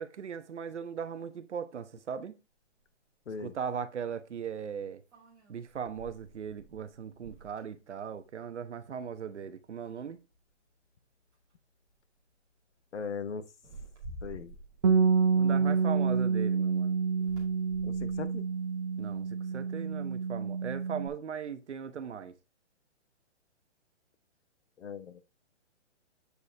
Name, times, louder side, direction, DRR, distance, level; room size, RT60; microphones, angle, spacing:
voice 1, 0.0-2.4 3.4-5.0 5.5-10.2 15.3-17.0 19.0-19.3 19.5-22.3, right 7 dB, 75° right, 1.1 m, -38 dB
sound 1, 2.8-2.9 5.1-8.7 9.0-9.4 9.8-10.5 11.3-11.5 11.8-12.2 13.5-16.2 17.1-19.5, right 2 dB, 10° right, 2.2 m, -51 dB
voice 2, 12.9-13.5 14.2-14.5 17.8-18.5 24.8-25.2, left 6 dB, 80° left, 1.3 m, -39 dB
Bass guitar, 14.8-21.1, right 5 dB, 30° right, 0.7 m, -28 dB
8.4 x 4.8 x 3.5 m
hypercardioid pair, 175°, 35 cm